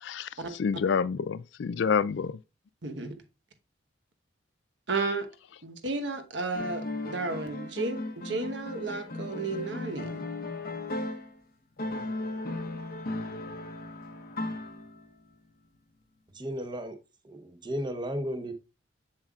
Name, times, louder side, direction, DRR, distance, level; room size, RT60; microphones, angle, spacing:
voice 1, 0.6-2.4, left 6 dB, 65° left, 0.3 m, -28 dB
voice 2, 2.8-3.2 4.9-5.3 5.6-10.2, right 3 dB, 70° right, 1.1 m, -33 dB
sound 1, 6.5-11.4 11.8-15.1, left 2 dB, 50° left, 0.9 m, -36 dB
voice 3, 16.3-17.0 17.2-18.5, equal, 25° right, 0.9 m, -34 dB
7.5 x 7.4 x 2.4 m
head